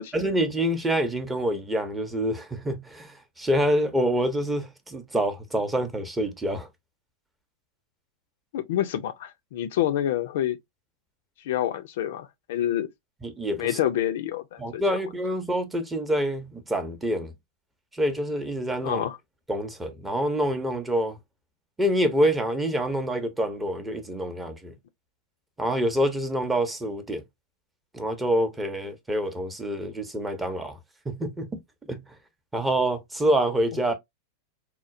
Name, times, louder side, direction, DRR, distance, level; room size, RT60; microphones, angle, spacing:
voice 1, 0.1-6.7 13.2-13.8 14.6-17.3 17.9-19.0 19.5-21.2 21.8-24.7 25.6-27.2 27.9-30.8 31.1-31.5 31.9-32.0 32.5-33.9, equal, 10° right, 0.7 m, -26 dB
voice 2, 8.5-10.6 11.4-12.9 13.6-14.8 18.8-19.2, left 11 dB, 55° left, 0.4 m, -27 dB
4.2 x 2.0 x 2.5 m
figure-of-eight pair, 90°, 0 cm